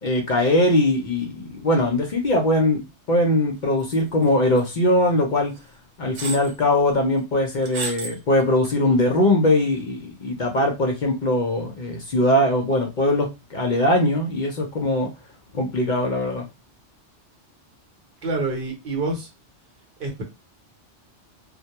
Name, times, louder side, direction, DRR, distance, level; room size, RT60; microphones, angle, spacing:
voice 1, 0.0-2.8 3.1-5.5 6.0-15.1 15.5-16.5, left 1 dB, 55° left, 1 dB, 0.6 m, -21 dB
sound 1, 3.9-4.3 4.6-4.7 5.6-5.7 6.2-6.5 7.6-8.2 8.6-8.7, right 4 dB, 80° right, 0.9 m, -31 dB
voice 2, 18.2-19.3 20.0-20.2, right 3 dB, 50° right, 1 dB, 0.9 m, -27 dB
2.1 x 2.1 x 2.8 m, 0.25 s
omnidirectional pair, 1.2 m